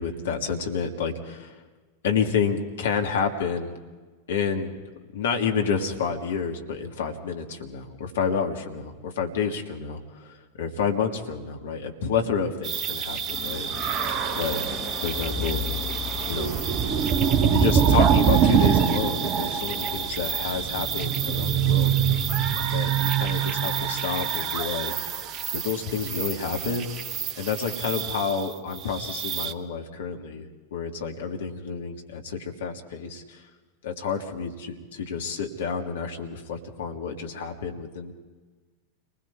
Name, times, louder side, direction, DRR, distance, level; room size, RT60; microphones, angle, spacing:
voice 1, 0.0-1.6 2.0-3.7 4.3-4.7 5.1-13.7 14.4-15.6 16.3-16.5 17.5-21.9 22.7-24.9 25.5-26.9 27.4-30.5 30.7-33.4 33.8-38.1, left 6 dB, 60° left, 3 dB, 2.2 m, -29 dB
sound 1, 12.6-29.5, right 8 dB, 35° right, 0.9 m, -25 dB
sound 2, 13.3-24.2, left 6 dB, 20° left, 7.1 m, -39 dB
29.5 x 20.5 x 4.7 m, 1.3 s
figure-of-eight pair, 90°, 0 cm